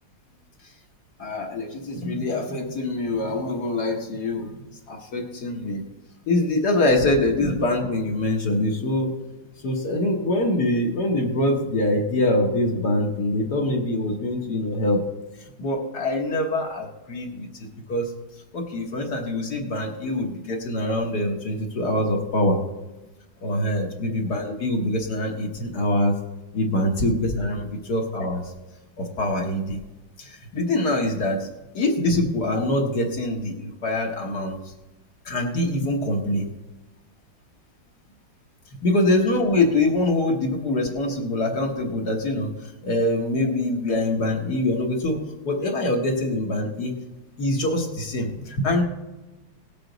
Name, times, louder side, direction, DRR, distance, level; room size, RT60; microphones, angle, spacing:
voice 1, 1.2-4.5 4.9-5.8 6.3-9.1 9.6-15.0 15.6-17.5 17.9-18.1 18.5-22.6 23.4-26.1 26.5-28.4 29.0-29.8 30.2-31.5 31.7-34.7 35.2-36.5 38.8-46.9 47.4-48.8, left 1 dB, 55° left, 1 dB, 1.6 m, -24 dB
18.0 x 7.9 x 3.9 m, 1.1 s
omnidirectional pair, 2.2 m